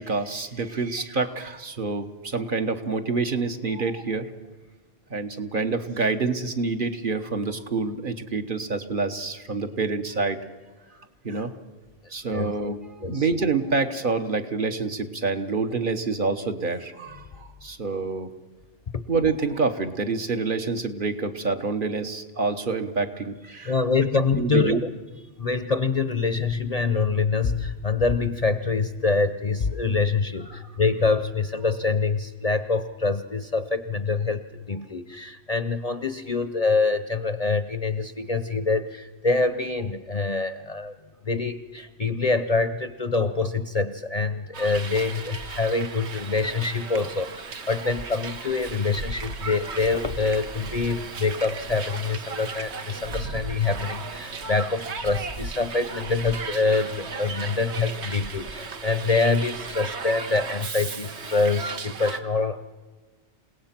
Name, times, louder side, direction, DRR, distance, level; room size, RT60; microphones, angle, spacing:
voice 1, 0.0-4.3 5.1-10.4 11.2-11.5 12.1-12.8 13.0-18.3 19.1-23.8 24.4-24.8, right 4 dB, 50° right, 7 dB, 1.3 m, -27 dB
voice 2, 23.6-24.8 25.4-34.4 34.7-41.0 41.2-62.7, left 4 dB, 40° left, 11 dB, 0.7 m, -25 dB
Hiss, 44.5-62.2, right 4 dB, 70° right, 1.5 m, -36 dB
28.5 x 17.5 x 5.9 m, 1.3 s
omnidirectional pair, 1.2 m